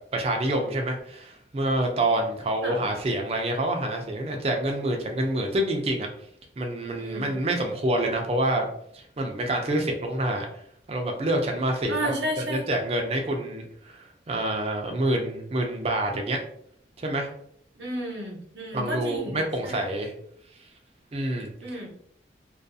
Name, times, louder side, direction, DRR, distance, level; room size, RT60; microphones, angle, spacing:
voice 1, 0.1-6.1 6.6-8.7 8.9-10.5 10.9-16.4 17.0-17.3 18.7-20.1 21.1-21.5, right 1 dB, 35° right, 3 dB, 0.4 m, -27 dB
voice 2, 7.0-7.4 11.9-12.7 17.8-19.4 19.6-19.8 21.6-21.9, equal, 75° right, 0 dB, 0.7 m, -32 dB
2.4 x 2.3 x 2.6 m, 0.68 s
head